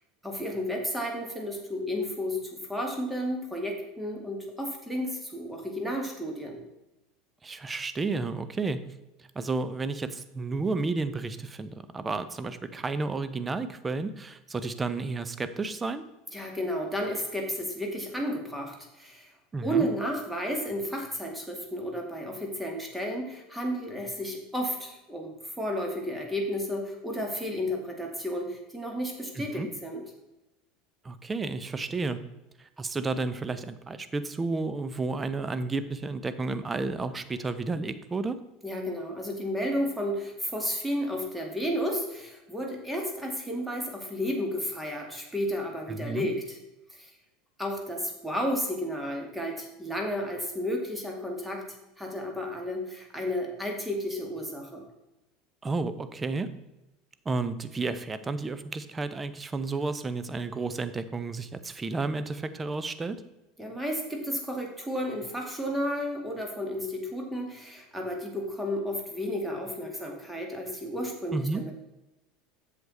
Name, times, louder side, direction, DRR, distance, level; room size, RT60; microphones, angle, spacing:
voice 1, 0.2-6.6 16.3-19.3 19.6-30.0 38.6-46.6 46.9-47.1 47.6-51.6 52.0-54.8 63.6-71.7, equal, 5° right, 1 dB, 2.2 m, -32 dB
voice 2, 7.4-8.8 9.2-16.0 19.5-19.9 29.3-29.7 31.0-32.2 32.6-38.4 45.9-46.3 55.6-56.5 57.2-63.2 71.3-71.6, right 3 dB, 20° right, 11 dB, 0.7 m, -32 dB
7.8 x 6.8 x 4.1 m, 0.96 s
figure-of-eight pair, 75°, 0 cm